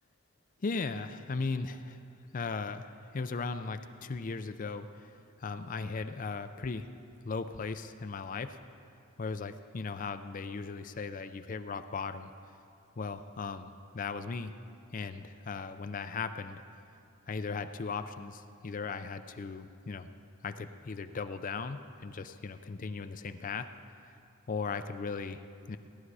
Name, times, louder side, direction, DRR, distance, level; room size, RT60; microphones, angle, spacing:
voice 1, 0.6-2.0 2.3-5.1 5.4-6.9 7.2-8.6 9.2-12.3 13.0-14.5 14.9-16.6 17.3-20.1 20.4-23.7 24.5-25.4 25.7-25.8, left 4 dB, 40° left, 10 dB, 0.5 m, -37 dB
17.0 x 11.0 x 4.8 m, 2.4 s
head